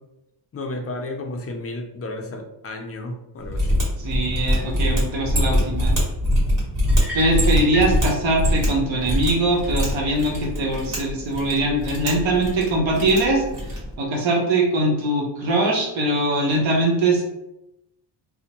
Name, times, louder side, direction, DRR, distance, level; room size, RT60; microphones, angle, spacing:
voice 1, 0.5-3.8, left 2 dB, 35° left, 3 dB, 0.4 m, -32 dB
Mechanisms, 3.4-13.9, equal, 40° right, 1.4 m, -23 dB
voice 2, 4.0-5.9 7.1-13.4 14.0-17.2, right 1 dB, 85° right, -1 dB, 0.9 m, -21 dB
sound 1, 6.9-8.0, left 2 dB, 5° right, 0.7 m, -33 dB
2.5 x 2.1 x 2.9 m, 0.87 s
cardioid pair, 120°, 45 cm